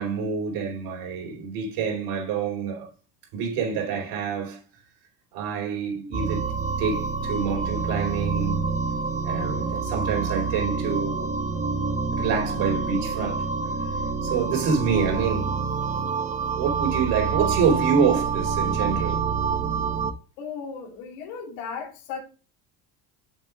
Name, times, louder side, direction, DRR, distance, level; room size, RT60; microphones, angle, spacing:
voice 1, 0.0-2.9 3.3-4.6 5.3-8.6 9.2-11.3 12.1-13.4 14.2-15.5 16.5-19.2, right 6 dB, 75° right, 4.4 m, -27 dB
sound 1, 6.1-20.1, right 5 dB, 20° right, 1.0 m, -27 dB
voice 2, 20.4-22.2, left 6 dB, 85° left, 2.4 m, -35 dB
9.4 x 7.6 x 2.5 m
cardioid pair, 110°, 39 cm